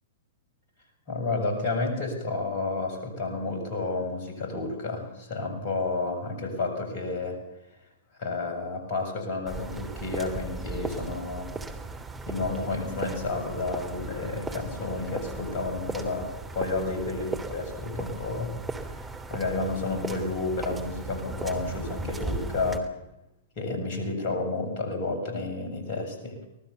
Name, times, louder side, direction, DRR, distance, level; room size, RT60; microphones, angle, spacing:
voice 1, 1.1-7.4 8.2-11.5 12.3-19.0 19.3-22.9 23.6-26.4, left 3 dB, 45° left, 5 dB, 7.3 m, -31 dB
sound 1, 9.5-22.8, right 3 dB, 10° right, 3.2 m, -37 dB
25.0 x 19.5 x 7.1 m, 0.89 s
figure-of-eight pair, 105°, 0 cm